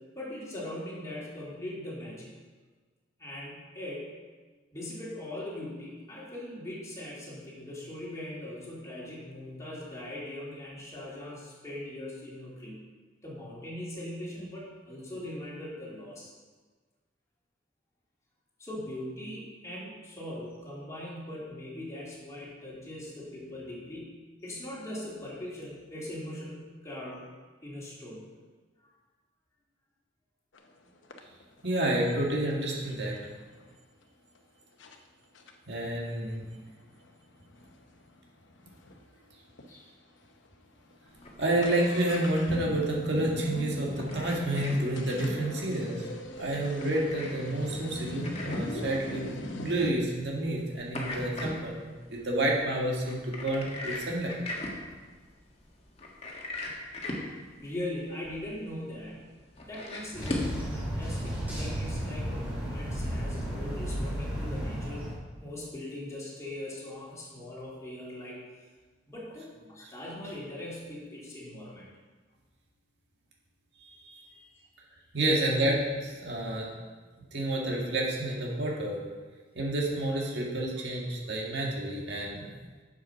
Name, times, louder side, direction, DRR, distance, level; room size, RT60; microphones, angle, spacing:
voice 1, 0.1-2.3 3.2-4.1 4.7-12.7 13.2-16.3 18.6-26.5 26.8-27.2 27.6-28.2 28.8-28.9 39.7-39.9 57.6-59.3 59.7-65.1 65.4-68.4 69.1-71.9 74.3-74.5, left 1 dB, 15° left, -7 dB, 3.0 m, -40 dB
sound 1, 30.5-30.7 31.1-33.7 34.3-34.4 34.8-35.0 35.3-39.0 39.3-39.4 39.6-39.7 40.3-40.5 40.8-49.9, left 1 dB, 90° left, 0.9 m, -40 dB
voice 2, 31.6-33.2 35.7-36.4 41.4-46.1 46.4-54.3 73.8-74.3 75.1-76.7 77.3-79.0 79.6-82.5, right 1 dB, 65° right, -2 dB, 2.0 m, -29 dB
sound 2, 41.1-60.6, left 1 dB, 35° left, 1.5 m, -41 dB
sound 3, 60.1-65.1, equal, 10° right, 3.2 m, -33 dB
7.5 x 7.5 x 5.8 m, 1.4 s
head